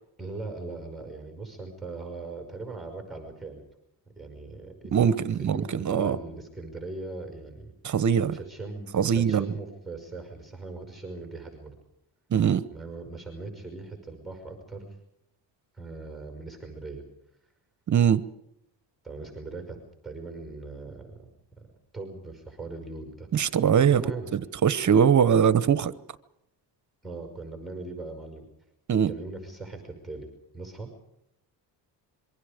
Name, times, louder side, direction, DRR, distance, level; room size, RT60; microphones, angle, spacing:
voice 1, 0.2-3.6 4.2-8.0 8.3-11.7 12.7-15.0 15.7-17.0 19.0-19.8 20.0-21.2 21.9-23.6 23.9-24.3 27.0-28.5 29.1-30.3 30.5-30.9, right 3 dB, ahead, 5.4 m, -39 dB
voice 2, 4.9-6.2 7.8-8.4 8.9-9.5 12.3-12.6 17.9-18.2 23.3-24.0 24.3-25.9 28.9-29.1, right 8 dB, 45° right, 1.0 m, -22 dB
26.5 x 23.5 x 5.1 m
cardioid pair, 105°, 42 cm